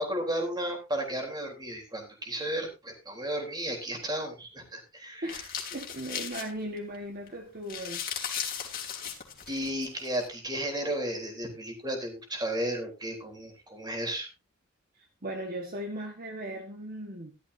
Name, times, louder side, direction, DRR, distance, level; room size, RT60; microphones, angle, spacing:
voice 1, 0.0-5.4 9.5-14.3, right 1 dB, 20° right, 3.7 m, -33 dB
voice 2, 5.2-8.0 15.0-17.3, right 1 dB, 45° right, 1.6 m, -38 dB
sound 1, 5.3-7.0 7.3-7.4 7.6-10.3, left 8 dB, 45° left, 3.0 m, -37 dB
13.5 x 12.5 x 2.8 m
head